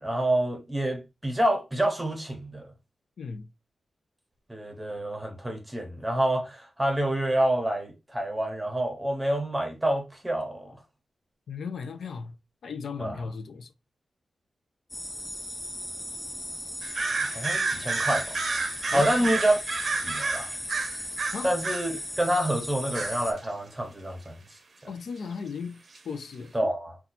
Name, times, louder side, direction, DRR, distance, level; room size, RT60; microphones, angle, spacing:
voice 1, 0.0-2.6 4.5-10.8 13.0-13.3 17.3-18.3 18.9-19.6 20.0-20.5 21.4-21.9 22.2-24.3 26.5-27.0, right 1 dB, 10° right, 0.9 m, -27 dB
voice 2, 3.2-3.5 11.5-12.3 12.6-13.7 18.9-19.3 21.3-21.5 24.9-26.5, left 5 dB, 80° left, 0.4 m, -36 dB
sound 1, 14.9-23.3, left 1 dB, 15° left, 0.6 m, -37 dB
sound 2, 16.8-21.9 22.9-23.5 25.9-26.0, right 3 dB, 45° right, 0.6 m, -30 dB
2.8 x 2.3 x 4.0 m
wide cardioid pair, 160°, 0 cm